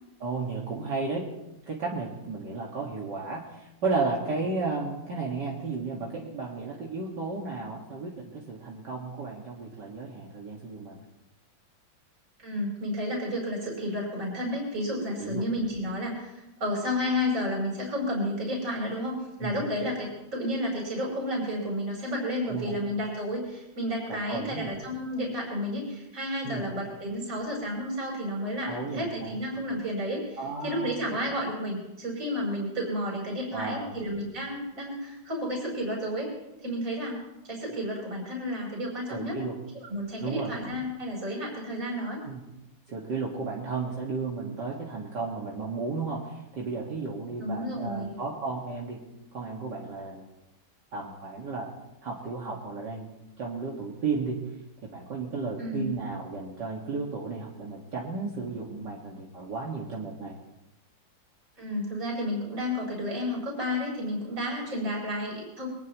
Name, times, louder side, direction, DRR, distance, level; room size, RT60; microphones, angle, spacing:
voice 1, 0.2-1.3 1.7-11.0 15.2-15.4 19.4-19.6 22.4-22.8 24.1-24.7 26.4-26.6 28.6-29.4 30.4-31.0 33.5-33.9 39.1-39.6 40.2-40.5 42.3-42.4 42.9-49.0 49.3-50.3 50.9-51.7 52.0-53.1 53.4-54.4 54.8-60.4, right 4 dB, 65° right, -3 dB, 2.6 m, -33 dB
voice 2, 12.4-36.3 36.6-37.2 37.5-39.4 39.7-42.2 47.4-48.1 55.6-56.0 61.6-65.7, equal, 45° right, -3 dB, 5.4 m, -31 dB
23.0 x 19.5 x 3.1 m, 0.92 s
omnidirectional pair, 2.1 m